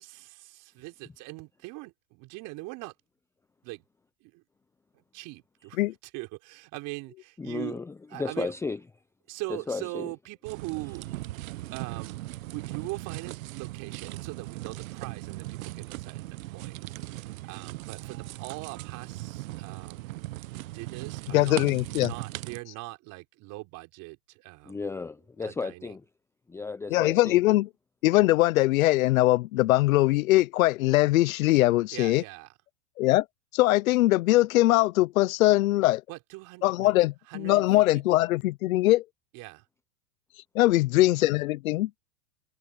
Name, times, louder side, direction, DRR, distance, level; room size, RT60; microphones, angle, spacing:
voice 1, 0.0-2.9 3.6-3.8 4.2-4.4 4.9-5.8 6.1-7.8 8.1-8.5 9.3-11.1 11.7-20.3 20.7-21.6 22.0-24.9 25.4-25.9 31.9-32.5 36.1-37.0 37.3-37.7 37.9-38.0 38.9-39.0 39.3-39.6, right 23 dB, 40° right, 4.0 m, -41 dB
voice 2, 7.4-8.8 9.7-10.1 24.6-26.0 26.5-27.4, left 4 dB, 5° left, 0.7 m, -34 dB
sound 1, 10.4-22.6, right 18 dB, 60° right, 1.0 m, -39 dB
voice 3, 21.3-22.1 26.9-27.7 28.0-32.2 33.0-33.2 33.5-36.0 36.6-39.0 40.5-41.9, left 17 dB, 60° left, 0.8 m, -22 dB
hypercardioid pair, 125°, 46 cm